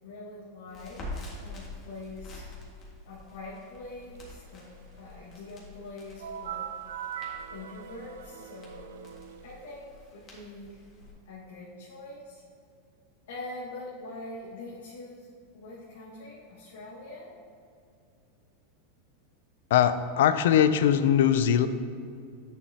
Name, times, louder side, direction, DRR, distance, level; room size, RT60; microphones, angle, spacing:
voice 1, 0.0-2.5 3.0-6.6 7.5-9.1 9.4-10.9 11.2-12.4 13.3-17.3, left 2 dB, 90° left, -7 dB, 1.7 m, -44 dB
Crackle, 0.7-11.1, left 2 dB, 30° left, 1.9 m, -46 dB
sound 1, 6.2-9.8, right 9 dB, 85° right, 0.4 m, -40 dB
voice 2, 19.7-21.7, left 9 dB, 75° left, 12 dB, 0.4 m, -21 dB
9.3 x 6.7 x 2.9 m, 2.4 s
supercardioid pair, 145°, 0 cm